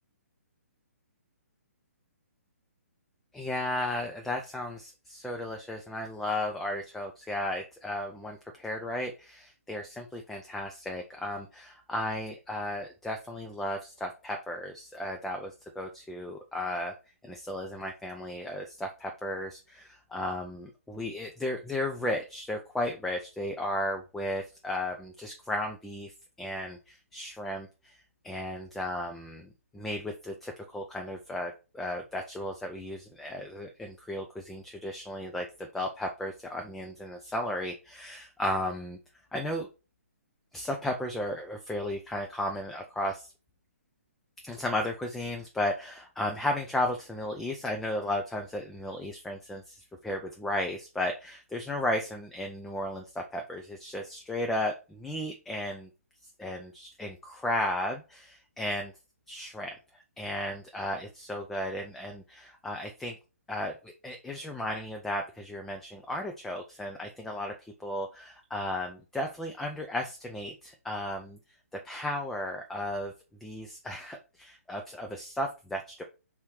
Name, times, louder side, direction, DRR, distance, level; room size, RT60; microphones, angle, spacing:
voice 1, 3.3-16.9 17.2-26.1 26.4-28.0 28.2-39.0 39.3-39.7 40.5-43.3 44.4-55.9 56.4-58.9 59.3-59.8 60.2-63.1 63.5-67.5 67.8-71.4 71.8-73.1 73.4-76.0, left 1 dB, 5° left, 3 dB, 0.3 m, -34 dB
4.2 x 3.5 x 2.9 m, 0.31 s
figure-of-eight pair, 130°, 8 cm